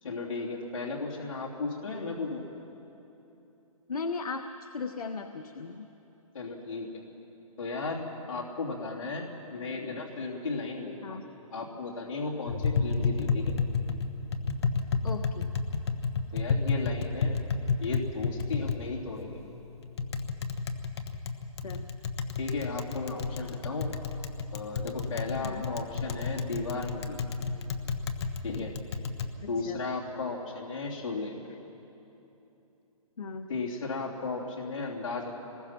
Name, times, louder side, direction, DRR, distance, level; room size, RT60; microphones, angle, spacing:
voice 1, 0.0-2.4 6.3-6.9 7.6-11.2 11.5-13.4 16.3-17.4 17.8-19.4 22.4-23.9 24.5-27.2 28.4-28.7 29.5-31.3 33.5-35.3, left 3 dB, 65° left, -4 dB, 3.2 m, -35 dB
voice 2, 3.9-5.9 11.0-11.2 15.0-15.5 21.6-21.9 25.4-25.7 29.4-29.8 33.2-33.5, left 4 dB, 85° left, 6 dB, 1.1 m, -37 dB
Tap, 12.5-29.3, left 4 dB, 45° left, 1.2 m, -31 dB
25.0 x 21.0 x 6.0 m, 3.0 s
hypercardioid pair, 160°, 18 cm